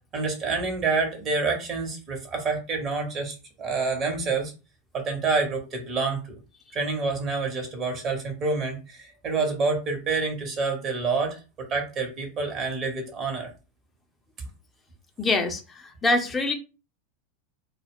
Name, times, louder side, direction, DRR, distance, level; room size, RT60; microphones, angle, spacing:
voice 1, 0.1-4.5 4.9-6.4 6.7-13.5, right 4 dB, 35° right, 3 dB, 1.1 m, -28 dB
voice 2, 15.2-16.5, left 2 dB, 15° left, 3 dB, 0.6 m, -25 dB
2.3 x 2.3 x 3.5 m, 0.31 s
figure-of-eight pair, 90°, 0 cm